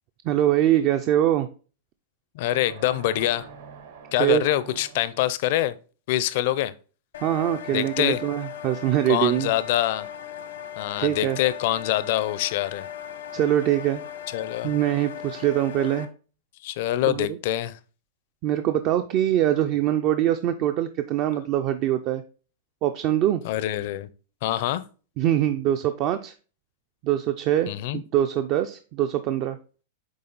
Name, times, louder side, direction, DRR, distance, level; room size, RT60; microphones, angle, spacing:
voice 1, 0.2-1.5 4.2-4.4 7.2-9.5 11.0-11.4 13.3-14.0 14.6-16.1 17.1-17.3 18.4-22.2 22.8-23.4 25.2-26.3 27.0-29.6, right 12 dB, 30° right, 0.4 m, -23 dB
voice 2, 2.3-3.5 4.1-5.8 6.1-6.7 7.7-8.2 9.1-10.1 10.8-12.9 14.3-14.7 16.6-17.8 23.4-24.1 24.4-24.8 27.7-28.0, left 14 dB, 50° left, 0.5 m, -25 dB
sound 1, 2.5-5.3, right 6 dB, 75° right, 1.6 m, -44 dB
sound 2, 7.1-16.1, left 10 dB, 85° left, 1.0 m, -38 dB
8.7 x 3.5 x 3.9 m
supercardioid pair, 165°, 0 cm